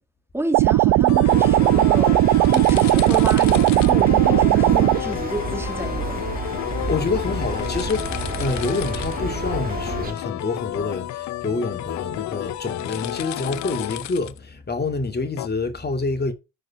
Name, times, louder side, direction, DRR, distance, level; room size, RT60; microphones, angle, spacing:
voice 1, 0.3-2.2 2.5-6.4, right 1 dB, 5° right, 2.0 m, -30 dB
sound 1, 0.5-5.0, right 18 dB, 70° right, 0.5 m, -17 dB
sound 2, 1.1-14.4 15.4-15.5, left 14 dB, 55° left, 0.6 m, -31 dB
sound 3, 1.3-10.1, right 3 dB, 25° right, 1.8 m, -31 dB
voice 2, 6.9-16.3, left 3 dB, 30° left, 2.2 m, -27 dB
6.6 x 4.9 x 7.0 m
supercardioid pair, 65°, 34 cm